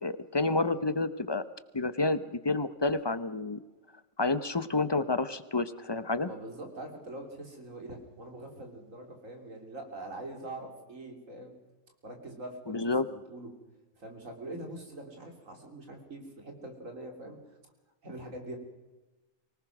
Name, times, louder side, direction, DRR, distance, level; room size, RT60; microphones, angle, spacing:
voice 1, 0.0-1.4 1.7-3.6 4.2-6.3 12.7-13.1, left 3 dB, 25° left, 13 dB, 0.8 m, -29 dB
voice 2, 6.1-11.6 12.0-13.5 14.0-17.4 18.0-18.6, right 1 dB, 80° right, 3 dB, 3.7 m, -43 dB
24.5 x 18.5 x 6.1 m, 1.2 s
omnidirectional pair, 1.4 m